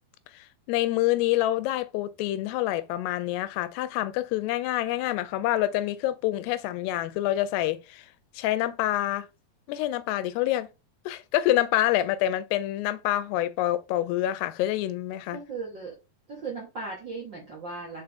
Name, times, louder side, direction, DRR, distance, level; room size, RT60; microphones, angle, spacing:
voice 1, 0.3-8.1 8.4-9.3 9.7-10.7 11.1-15.4, left 14 dB, 90° left, 2.7 m, -27 dB
voice 2, 15.3-16.0 16.3-18.0, right 4 dB, 70° right, 1.0 m, -37 dB
6.7 x 4.2 x 3.5 m
omnidirectional pair, 4.6 m